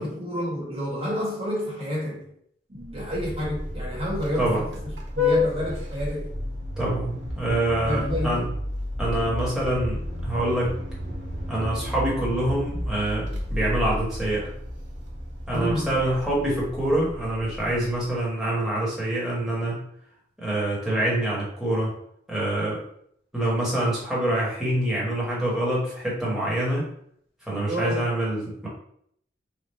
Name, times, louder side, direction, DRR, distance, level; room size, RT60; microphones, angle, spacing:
voice 1, 0.0-2.3 2.7-4.5 5.1-6.3 7.8-8.4 15.5-16.0 27.6-28.1, equal, 35° right, -6 dB, 1.5 m, -29 dB
Vehicle horn car horn honking, 2.8-18.2, left 2 dB, 85° right, 1.0 m, -31 dB
voice 2, 6.8-8.4 9.0-10.7 11.5-14.5 15.5-19.8 20.4-21.9 22.3-22.8 23.3-26.8 27.5-28.7, right 1 dB, 5° right, -6 dB, 1.2 m, -26 dB
3.5 x 2.3 x 4.1 m, 0.68 s
head